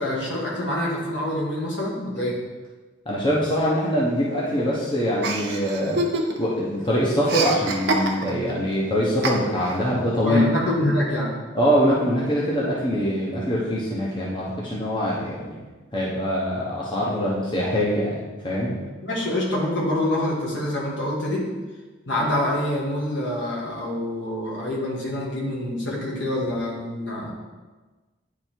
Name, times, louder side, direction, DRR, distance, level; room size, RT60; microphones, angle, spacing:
voice 1, 0.0-2.4 10.2-11.3 18.7-21.5 22.1-27.3, left 1 dB, 65° left, -4 dB, 1.8 m, -26 dB
voice 2, 3.1-6.0 6.4-10.4 11.5-15.5 15.9-18.7, equal, 25° left, -6 dB, 0.9 m, -23 dB
Chuckle chortle, 5.2-6.6 6.8-8.5 9.2-9.8, right 2 dB, 55° right, 0.8 m, -26 dB
9.7 x 3.4 x 4.5 m, 1.3 s
head